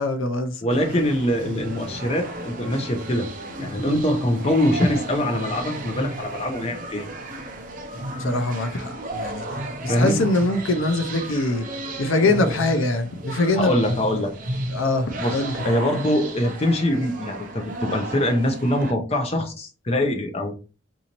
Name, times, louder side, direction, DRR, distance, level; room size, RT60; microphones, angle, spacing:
voice 1, 0.0-0.6 8.2-9.5 9.8-11.7 12.0-13.7 14.7-15.7, left 2 dB, 70° left, 0.5 m, -23 dB
voice 2, 0.6-3.3 3.6-7.1 9.9-10.2 13.6-14.3 15.2-20.5, left 1 dB, 30° left, 0.6 m, -23 dB
sound 1, 0.7-18.9, right 1 dB, 40° right, 0.6 m, -34 dB
4.1 x 2.7 x 2.9 m
head